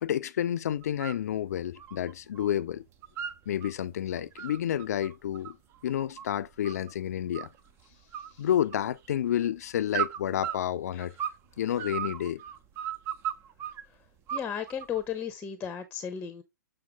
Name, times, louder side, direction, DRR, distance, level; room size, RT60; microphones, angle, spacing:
voice 1, 0.0-2.8 3.5-5.6 5.8-7.5 8.4-11.1 11.6-12.4, left 10 dB, 60° left, 0.5 m, -30 dB
sound 1, 0.8-1.2 1.6-2.5 2.8-3.7 4.2-6.9 7.3-7.8 8.1-9.1 9.9-11.4 11.8-13.8 14.3-15.0, right 10 dB, 25° right, 0.7 m, -36 dB
voice 2, 14.3-16.4, left 8 dB, 15° left, 0.8 m, -35 dB
7.6 x 4.8 x 3.4 m
hypercardioid pair, 125°, 10 cm